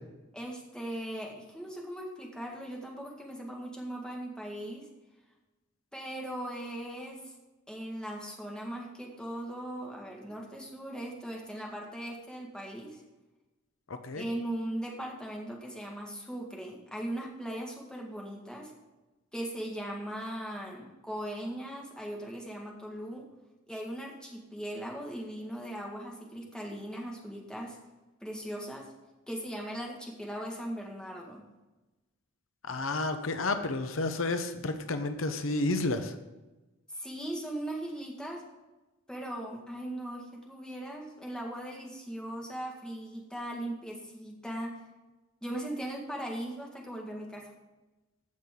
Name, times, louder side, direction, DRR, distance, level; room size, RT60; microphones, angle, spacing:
voice 1, 0.3-4.9 5.9-7.3 7.7-13.0 14.2-18.7 19.3-23.3 23.7-27.8 28.2-28.9 29.3-31.5 36.9-38.4 39.1-44.8 45.4-47.5, right 1 dB, 5° left, -1 dB, 1.9 m, -39 dB
voice 2, 13.9-14.3 32.6-36.1, left 2 dB, 80° left, 8 dB, 0.9 m, -31 dB
15.0 x 5.9 x 3.8 m, 1.1 s
head